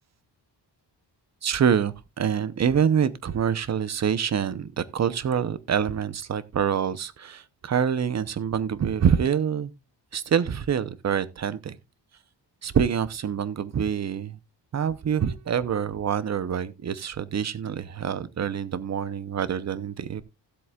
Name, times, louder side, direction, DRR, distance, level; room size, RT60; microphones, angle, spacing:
voice 1, 1.4-9.7 10.1-11.8 12.6-14.4 14.7-20.2, right 8 dB, 40° right, 0.8 m, -26 dB
16.5 x 7.7 x 2.4 m
wide cardioid pair, 155°, 42 cm